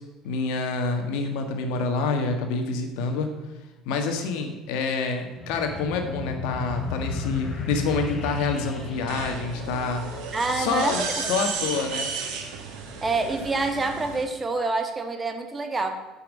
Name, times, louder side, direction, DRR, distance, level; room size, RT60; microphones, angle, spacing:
voice 1, 0.2-3.3 3.8-10.1 10.5-12.1, left 4 dB, 75° left, 5 dB, 1.5 m, -27 dB
sound 1, 5.4-10.3, left 3 dB, 40° left, 1.1 m, -34 dB
sound 2, 6.6-14.2, right 5 dB, 75° right, 1.9 m, -35 dB
voice 2, 10.3-11.0 11.2-11.4 13.0-16.0, right 3 dB, 25° right, 6 dB, 1.6 m, -27 dB
9.4 x 5.8 x 7.5 m, 1.1 s
supercardioid pair, 80°, 0 cm